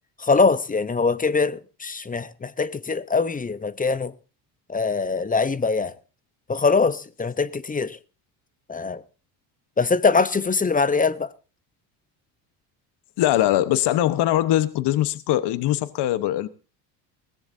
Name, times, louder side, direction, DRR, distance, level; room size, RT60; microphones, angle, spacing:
voice 1, 0.2-4.1 4.7-6.0 6.5-8.0 8.7-9.0 9.8-11.3, left 4 dB, 20° left, 0.8 m, -22 dB
voice 2, 13.2-16.5, left 13 dB, 60° left, 1.1 m, -21 dB
20.5 x 17.0 x 2.7 m
supercardioid pair, 95°, 46 cm